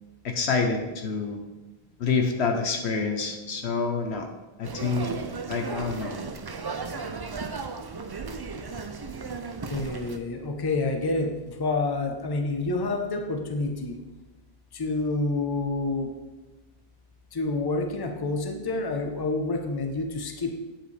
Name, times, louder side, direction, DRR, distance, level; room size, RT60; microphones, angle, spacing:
voice 1, 0.2-1.4 2.0-4.3 4.6-5.1 5.5-6.1, left 4 dB, 85° left, 5 dB, 1.2 m, -27 dB
sound 1, 4.6-10.2, right 4 dB, 40° right, 0.3 m, -35 dB
voice 2, 9.7-14.0 14.7-16.1 17.3-20.5, left 3 dB, 25° left, 4 dB, 0.8 m, -28 dB
8.7 x 7.8 x 3.3 m, 1.1 s
omnidirectional pair, 1.1 m